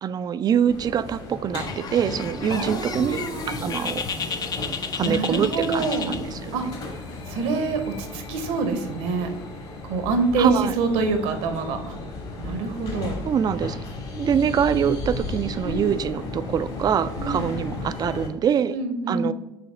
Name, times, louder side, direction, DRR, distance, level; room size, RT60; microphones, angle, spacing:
voice 1, 0.0-3.2 3.6-4.0 4.9-6.4 10.4-10.7 13.3-13.8 14.1-18.8 19.1-19.3, right 8 dB, 30° right, 13 dB, 0.3 m, -24 dB
sound 1, 0.7-18.3, left 2 dB, 50° left, 1.7 m, -34 dB
Bird, 1.7-6.7, left 6 dB, 30° left, 0.5 m, -33 dB
voice 2, 2.5-3.7 5.0-6.1 6.5-6.7 7.3-9.3 9.8-12.0 12.4-13.2 15.6-15.9 17.2-17.4 18.7-19.3, right 3 dB, 65° right, 7 dB, 0.9 m, -26 dB
5.7 x 3.5 x 4.9 m, 0.92 s
figure-of-eight pair, 60°, 13 cm